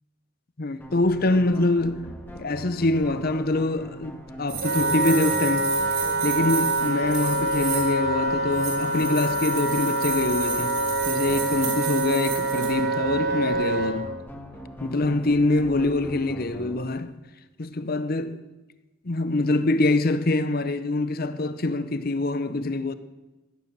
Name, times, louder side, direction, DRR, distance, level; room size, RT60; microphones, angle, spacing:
voice 1, 0.6-2.1 2.3-5.8 6.2-10.8 11.1-14.2 14.8-17.2 17.6-18.4 19.0-22.9, left 2 dB, 45° left, 0.8 m, -25 dB
sound 1, 0.8-16.8, equal, 10° left, 1.6 m, -42 dB
sound 2, 4.5-8.0 8.5-12.7, right 7 dB, 75° right, 5.7 m, -33 dB
Wind instrument woodwind instrument, 4.6-14.0, right 2 dB, 55° right, 4.0 m, -26 dB
16.5 x 12.0 x 6.7 m
head